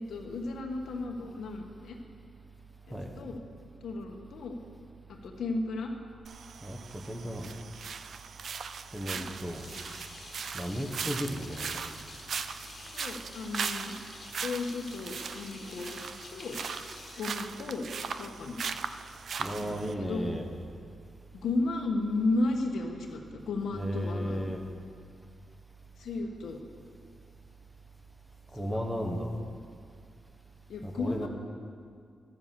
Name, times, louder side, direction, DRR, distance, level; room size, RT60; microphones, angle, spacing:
voice 1, 0.0-2.0 2.9-3.4 3.8-4.6 5.1-5.9 9.1-9.2 12.9-13.9 14.4-15.9 16.3-16.6 17.2-17.8 18.2-18.6 19.6-20.3 21.4-24.4 26.0-26.6 28.6-28.8 30.7-31.3, left 2 dB, 85° left, 2 dB, 1.2 m, -34 dB
voice 2, 2.9-3.3 6.6-7.5 8.9-9.6 10.5-11.8 19.4-20.4 23.7-24.6 28.5-29.3 30.8-31.3, equal, 10° right, 3 dB, 1.4 m, -35 dB
sound 1, 6.2-19.9, right 6 dB, 65° right, 0.4 m, -39 dB
sound 2, 9.3-18.1, left 3 dB, 45° left, 1.6 m, -49 dB
12.0 x 6.9 x 7.3 m, 2.2 s
cardioid pair, 85°, 0 cm